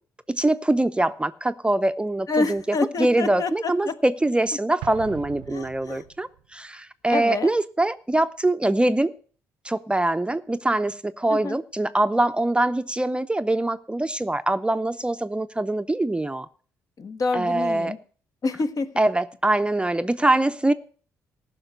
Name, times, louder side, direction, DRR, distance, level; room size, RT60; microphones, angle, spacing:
voice 1, 0.3-2.6 3.0-9.1 9.6-16.5 17.3-17.9 19.0-20.7, right 2 dB, 15° right, 0.6 m, -23 dB
voice 2, 2.3-4.0 5.5-6.0 7.1-7.5 11.3-11.6 17.0-18.0 18.4-18.9, left 3 dB, 45° left, 1.2 m, -27 dB
Explosion, 4.8-6.5, right 13 dB, 80° right, 0.6 m, -40 dB
14.5 x 5.9 x 8.0 m
hypercardioid pair, 50°, 8 cm